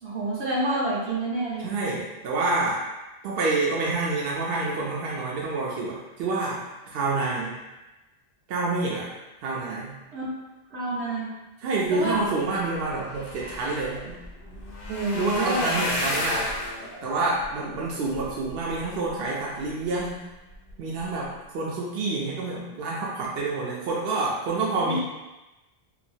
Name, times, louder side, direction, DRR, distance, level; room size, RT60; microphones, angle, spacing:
voice 1, 0.0-1.7 10.1-10.3 10.7-11.3 11.9-12.2 14.9-15.8 24.8-25.0, right 1 dB, 85° right, -6 dB, 1.1 m, -28 dB
voice 2, 1.6-2.8 3.2-6.6 6.9-7.6 8.5-9.1 9.4-10.0 11.6-14.2 15.1-16.5 17.0-20.2 20.8-25.0, right 3 dB, 70° right, -4 dB, 0.8 m, -28 dB
sound 1, 12.8-19.1 19.7-20.1 20.5-20.7 21.0-21.1, left 1 dB, 65° left, 0.7 m, -33 dB
2.8 x 2.3 x 2.6 m, 1.0 s
omnidirectional pair, 1.1 m